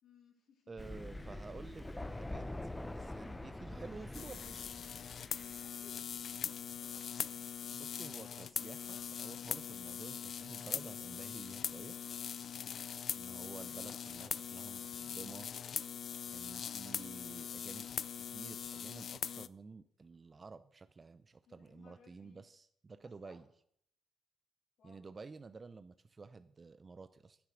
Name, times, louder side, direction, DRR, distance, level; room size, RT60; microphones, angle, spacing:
voice 1, 0.0-1.3 5.6-7.2 13.4-14.3 21.5-22.5 23.2-23.4 24.8-25.1, left 6 dB, 70° left, 0 dB, 3.3 m, -65 dB
voice 2, 0.7-2.5 2.8-4.8 7.7-12.0 13.2-15.5 16.3-23.5 24.8-27.4, right 4 dB, 30° right, 12 dB, 0.6 m, -51 dB
Thunder, 0.8-5.6, left 1 dB, 10° left, 0.8 m, -45 dB
sound 1, 4.1-19.5, left 8 dB, 55° left, 0.4 m, -42 dB
9.9 x 9.6 x 6.3 m, 0.69 s
cardioid pair, 90°, 0 cm